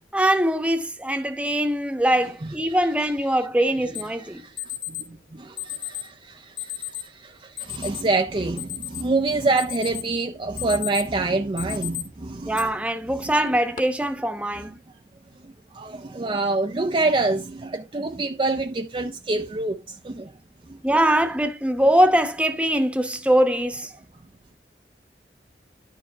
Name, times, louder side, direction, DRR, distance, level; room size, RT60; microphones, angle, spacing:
voice 1, 0.1-4.4 12.5-14.8 20.8-23.9, right 1 dB, 5° right, 1.0 m, -22 dB
Alarm, 3.9-4.0 4.6-5.0 5.6-6.1 6.6-7.0 7.6-8.0 8.4-9.2 9.6-10.1 10.4-11.1 11.6-12.0 12.5-12.6 13.4-13.8, left 14 dB, 45° left, 1.9 m, -33 dB
voice 2, 4.4-12.7 15.4-20.3 20.7-20.8, right 3 dB, 30° right, 0.5 m, -26 dB
11.0 x 4.6 x 4.5 m
head